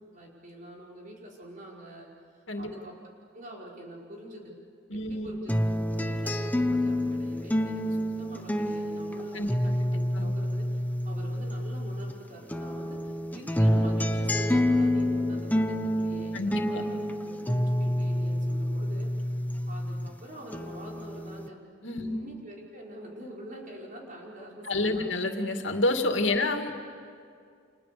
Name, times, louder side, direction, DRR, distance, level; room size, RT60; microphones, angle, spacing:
voice 1, 0.0-3.0 3.3-4.6 4.9-5.6 6.0-10.7 11.0-19.3 19.7-21.6 22.0-25.1 26.3-26.4, right 1 dB, 45° right, -2 dB, 5.3 m, -45 dB
voice 2, 4.9-5.4 9.3-9.5 10.2-10.3 16.3-16.8 21.8-22.2 24.6-26.8, left 2 dB, 85° left, 4 dB, 2.4 m, -28 dB
sound 1, 5.5-12.1 12.5-20.1 20.5-21.5, left 1 dB, 10° left, 1.0 m, -28 dB
29.5 x 28.0 x 7.0 m, 2.3 s
head